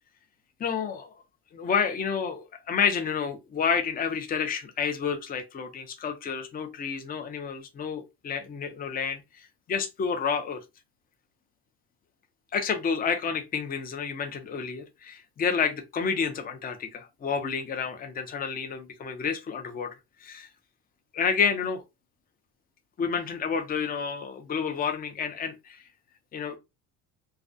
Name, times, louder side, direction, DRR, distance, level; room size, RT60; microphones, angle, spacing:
voice 1, 0.6-1.1 1.5-10.6 12.5-19.9 20.2-20.5 21.1-21.8 23.0-25.8 26.3-26.6, left 6 dB, 25° left, 0.5 m, -30 dB
2.3 x 2.2 x 2.5 m
supercardioid pair, 100°, 39 cm